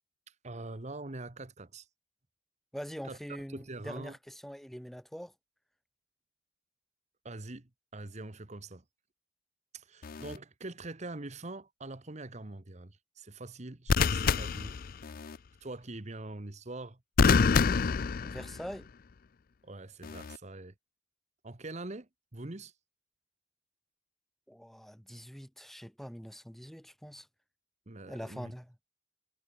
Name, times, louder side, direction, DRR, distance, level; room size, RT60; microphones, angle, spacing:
voice 1, 0.4-1.9 3.0-3.2 3.5-4.2 7.2-8.8 9.7-14.8 15.6-17.0 19.6-20.7 21.4-22.7 27.9-28.5, right 2 dB, 35° right, 1.3 m, -43 dB
voice 2, 2.7-5.3 18.2-18.9 24.5-27.3 28.1-28.7, equal, ahead, 4.1 m, -44 dB
sound 1, 10.0-10.4 13.9-15.4 17.2-18.8 20.0-20.4, left 5 dB, 50° left, 0.5 m, -27 dB
head